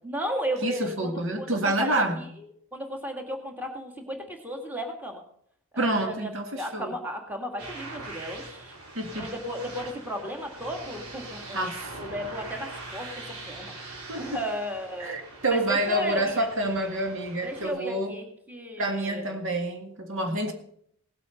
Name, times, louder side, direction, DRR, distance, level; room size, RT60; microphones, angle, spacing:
voice 1, 0.0-2.2 2.7-5.2 5.7-8.8 9.2-11.7 12.0-13.7 14.2-15.2 15.4-16.5 17.4-19.4, equal, 10° right, 3 dB, 2.1 m, -34 dB
voice 2, 0.6-2.3 5.8-7.0 9.0-9.3 11.5-12.0 14.1-14.4 15.0-18.2 18.8-20.5, right 1 dB, 60° right, 5 dB, 1.8 m, -28 dB
sound 1, 7.6-17.7, right 2 dB, 85° right, 4.2 m, -42 dB
17.5 x 8.2 x 5.7 m, 0.68 s
head